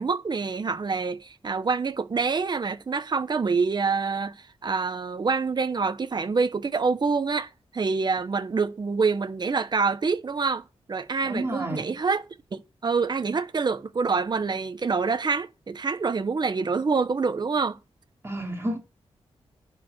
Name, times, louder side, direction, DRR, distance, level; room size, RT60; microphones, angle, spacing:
voice 1, 0.0-17.8, right 4 dB, 40° right, 1.1 m, -26 dB
voice 2, 11.2-11.9 18.2-18.8, right 1 dB, 25° right, 3.3 m, -30 dB
11.0 x 4.8 x 7.9 m
wide cardioid pair, 120°, 11 cm